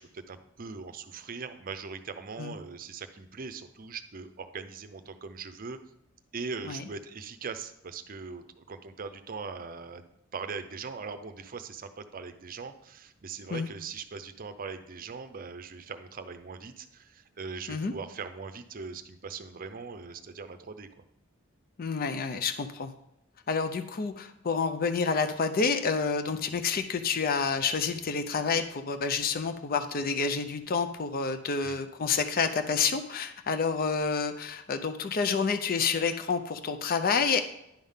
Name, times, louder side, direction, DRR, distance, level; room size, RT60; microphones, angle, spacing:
voice 1, 0.0-5.8 6.3-21.0 31.6-31.8, right 5 dB, 45° right, 9 dB, 0.6 m, -41 dB
voice 2, 21.8-22.9 23.5-37.4, left 5 dB, 45° left, 8 dB, 0.5 m, -29 dB
10.5 x 3.6 x 5.6 m, 0.83 s
head